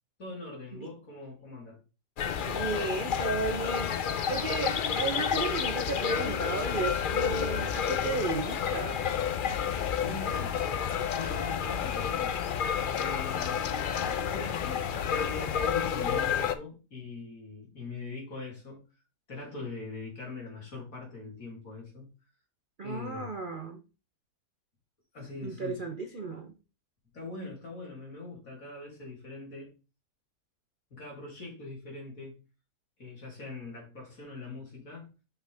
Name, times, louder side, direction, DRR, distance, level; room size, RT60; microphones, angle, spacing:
voice 1, 0.2-1.8 10.0-10.6 11.1-12.4 12.9-13.8 14.2-18.8 19.3-22.1 22.8-23.3 25.1-25.9 27.1-29.7 30.9-32.4 33.0-35.1, left 3 dB, 60° left, 3.4 m, -42 dB
sound 1, 2.2-16.6, left 7 dB, 80° left, 0.4 m, -30 dB
voice 2, 2.4-4.0 4.3-9.2 22.8-23.8 25.4-26.5, right 3 dB, 45° right, 0.7 m, -34 dB
6.5 x 5.5 x 3.4 m
omnidirectional pair, 1.6 m